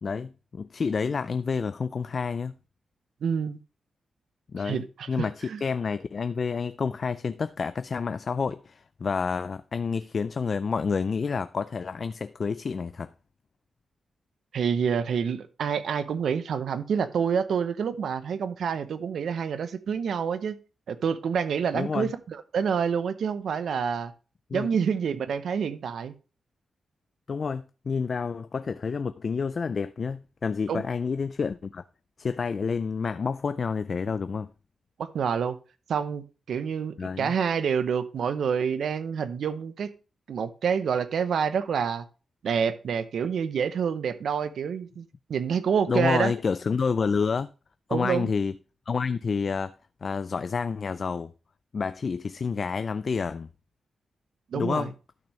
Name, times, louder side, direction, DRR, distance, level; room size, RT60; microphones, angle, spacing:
voice 1, 0.0-2.5 4.5-13.1 21.7-22.1 24.5-24.7 27.3-31.8 32.2-34.5 37.0-37.3 45.9-47.5 47.9-48.5 48.9-49.7 50.0-51.3 51.7-53.5 54.5-54.9, left 5 dB, 45° left, 0.3 m, -29 dB
voice 2, 3.2-3.6 4.6-5.6 14.5-20.5 20.9-24.1 24.5-26.1 30.7-30.8 35.0-35.6 35.9-39.9 40.3-42.0 42.4-46.3 47.9-48.3 54.5-54.9, right 7 dB, 70° right, 0.7 m, -27 dB
11.5 x 6.2 x 3.2 m
wide cardioid pair, 135°, 0 cm